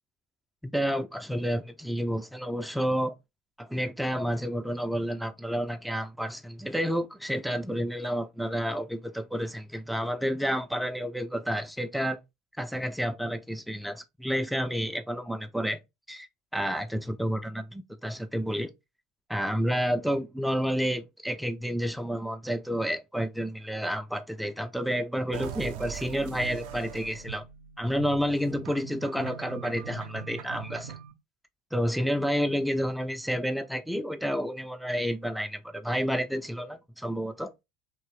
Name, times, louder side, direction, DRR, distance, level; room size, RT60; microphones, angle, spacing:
voice 1, 0.6-3.1 3.6-12.2 12.6-15.8 16.1-18.7 19.3-27.4 27.8-30.9 31.7-37.5, equal, ahead, 0.3 m, -30 dB
sound 1, 25.3-31.1, right 9 dB, 60° right, 0.5 m, -41 dB
3.0 x 2.8 x 3.1 m
figure-of-eight pair, 70°, 0 cm